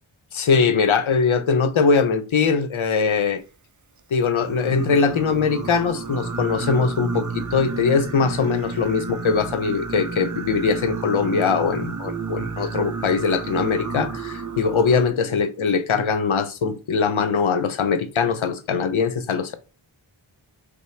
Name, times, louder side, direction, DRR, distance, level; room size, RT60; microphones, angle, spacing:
voice 1, 0.3-3.4 4.1-19.5, left 5 dB, 75° left, 0.7 m, -21 dB
Singing, 4.4-15.1, right 4 dB, 40° right, 0.5 m, -31 dB
5.5 x 2.1 x 3.2 m
wide cardioid pair, 50°, 49 cm